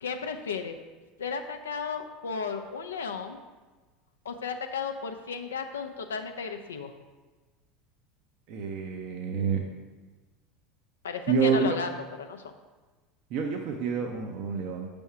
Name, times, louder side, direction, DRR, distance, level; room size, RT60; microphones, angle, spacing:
voice 1, 0.0-0.8 1.2-3.4 4.3-6.9 11.0-11.9 12.2-12.4, left 5 dB, 75° left, 6 dB, 0.4 m, -34 dB
voice 2, 8.5-9.6 11.3-11.7 13.3-14.9, right 6 dB, 55° right, 2 dB, 0.6 m, -28 dB
6.2 x 3.5 x 5.7 m, 1.3 s
figure-of-eight pair, 75°, 0 cm